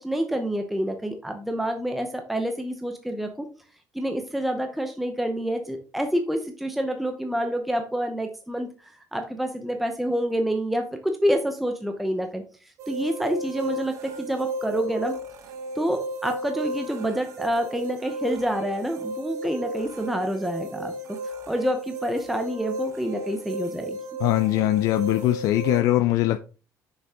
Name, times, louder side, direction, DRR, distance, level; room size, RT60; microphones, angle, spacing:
voice 1, 0.0-3.5 3.9-12.4 12.9-15.1 15.8-20.9 21.5-24.0, equal, ahead, 0.8 m, -27 dB
sound 1, 12.8-25.8, right 1 dB, 65° right, 1.1 m, -34 dB
voice 2, 24.2-26.4, left 15 dB, 80° left, 0.4 m, -21 dB
7.0 x 6.5 x 3.6 m
cardioid pair, 165°, 6 cm